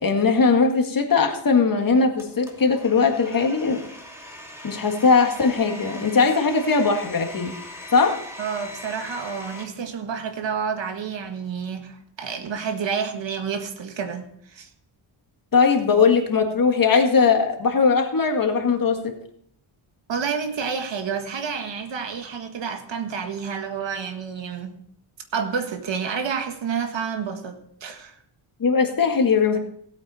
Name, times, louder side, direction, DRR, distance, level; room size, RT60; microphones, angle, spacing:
voice 1, 0.0-3.8 4.6-7.5 7.9-8.2 15.5-19.0 28.6-29.6, left 5 dB, 45° left, 4 dB, 1.9 m, -19 dB
Domestic sounds home sounds, 2.2-9.6, left 1 dB, 5° right, 2.3 m, -40 dB
voice 2, 8.4-14.7 20.1-24.8 25.3-28.1, right 6 dB, 65° right, 6 dB, 1.7 m, -29 dB
17.0 x 8.6 x 4.3 m, 0.67 s
wide cardioid pair, 125°, 48 cm